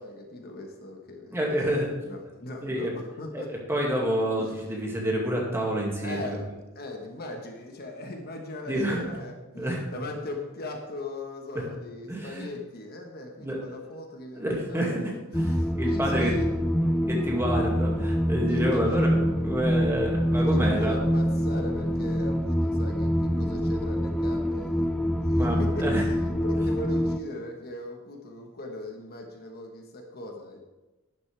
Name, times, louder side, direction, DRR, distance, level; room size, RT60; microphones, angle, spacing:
voice 1, 0.0-3.5 4.4-4.5 6.0-6.4 6.7-16.6 18.5-19.1 20.3-24.9 25.2-30.6, left 2 dB, 45° left, 3 dB, 1.2 m, -39 dB
voice 2, 1.3-1.9 2.6-2.9 3.3-6.4 8.7-9.0 9.6-9.8 11.6-11.7 12.1-12.5 13.4-13.6 14.4-16.4 17.1-20.9 25.3-26.0, equal, 10° right, -2 dB, 2.1 m, -28 dB
sound 1, 15.3-27.2, equal, 5° left, 0.4 m, -25 dB
11.5 x 10.5 x 3.4 m, 1.1 s
head